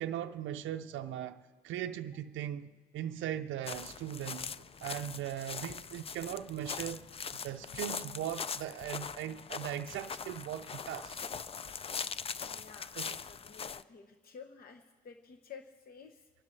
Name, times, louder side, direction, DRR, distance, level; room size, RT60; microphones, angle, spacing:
voice 1, 0.0-7.1 7.4-11.2 13.0-13.1, right 11 dB, 80° right, 0.5 m, -39 dB
sound 1, 3.6-13.8, left 6 dB, 30° left, 0.4 m, -41 dB
voice 2, 12.5-16.3, left 6 dB, 50° left, 1.0 m, -52 dB
27.0 x 12.0 x 3.2 m
cardioid pair, 90°, 20 cm